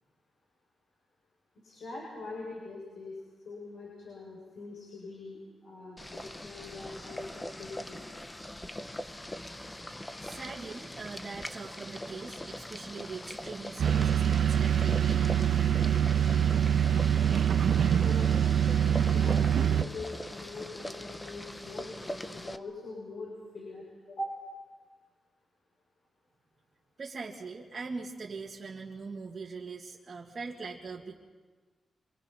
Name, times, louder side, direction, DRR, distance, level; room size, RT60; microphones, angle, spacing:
voice 1, 1.6-3.2 3.4-8.0 17.7-24.4, left 2 dB, 70° left, -4 dB, 7.2 m, -43 dB
Boiling, 6.0-22.6, left 1 dB, 15° left, 0.9 m, -42 dB
voice 2, 10.2-16.0 27.0-31.2, right 4 dB, 35° right, -6 dB, 2.5 m, -41 dB
sound 1, 13.8-19.8, right 9 dB, 75° right, 1.2 m, -25 dB
27.0 x 26.0 x 5.9 m, 1.4 s
wide cardioid pair, 160°, 0 cm